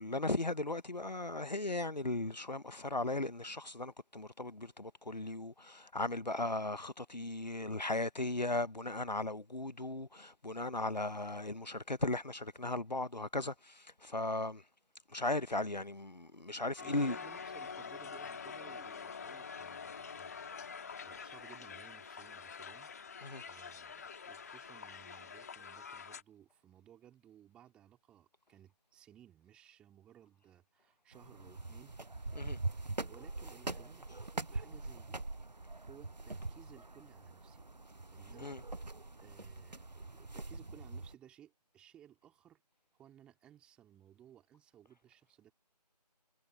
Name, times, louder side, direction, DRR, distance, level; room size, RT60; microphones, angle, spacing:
voice 1, 0.0-14.6 15.1-17.2 23.2-23.4 32.3-32.6 38.4-38.6, left 2 dB, 80° left, 1.2 m, -37 dB
Crowd, 16.8-26.2, left 6 dB, 25° left, 2.6 m, -46 dB
voice 2, 16.8-20.5 21.0-35.2 35.8-37.6 38.1-38.9 39.2-42.6 42.9-45.5, right 11 dB, 5° right, 3.5 m, -60 dB
sound 1, 31.1-41.1, right 2 dB, 80° right, 1.0 m, -43 dB
figure-of-eight pair, 160°, 21 cm